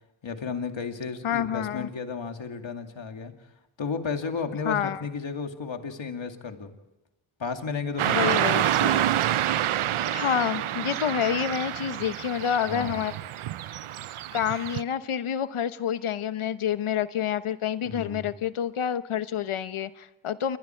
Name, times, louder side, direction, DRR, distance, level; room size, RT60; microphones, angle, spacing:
voice 1, 0.2-3.3 3.8-6.7 7.4-8.4 12.7-13.1 17.8-18.3, left 5 dB, 65° left, 5 dB, 2.5 m, -33 dB
voice 2, 1.2-1.9 4.6-5.0 8.1-9.1 9.7-9.8 10.1-13.1 14.3-20.6, left 9 dB, 85° left, 12 dB, 1.0 m, -28 dB
Car passing by / Traffic noise roadway noise, 8.0-14.8, right 12 dB, 85° right, 0.7 m, -27 dB
27.5 x 23.0 x 4.5 m, 0.99 s
cardioid pair, 70°, 48 cm